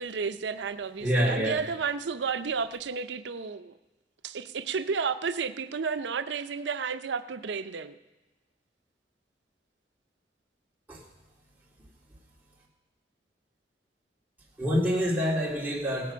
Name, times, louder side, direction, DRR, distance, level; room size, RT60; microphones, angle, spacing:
voice 1, 0.0-3.7 4.2-7.9, right 5 dB, 80° right, 11 dB, 0.5 m, -32 dB
voice 2, 1.0-1.6 10.9-11.0 14.6-16.1, equal, 10° right, -5 dB, 2.3 m, -26 dB
17.5 x 7.7 x 5.5 m, 1.1 s
head